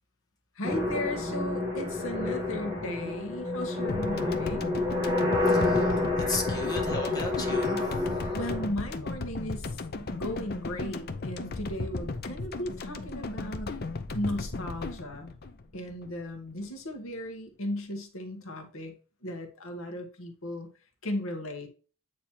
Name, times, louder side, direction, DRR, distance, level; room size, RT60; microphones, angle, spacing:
voice 1, 0.5-4.7 8.3-9.7 10.1-13.8 14.1-15.3 15.7-18.9 19.2-20.7 21.0-21.7, left 1 dB, 65° left, 1.2 m, -36 dB
sound 1, 0.6-8.7, left 2 dB, 15° right, 1.5 m, -29 dB
sound 2, 3.9-16.3, left 3 dB, 45° left, 0.6 m, -36 dB
voice 2, 5.4-8.2, left 2 dB, 20° left, 1.1 m, -36 dB
8.6 x 3.1 x 4.4 m
head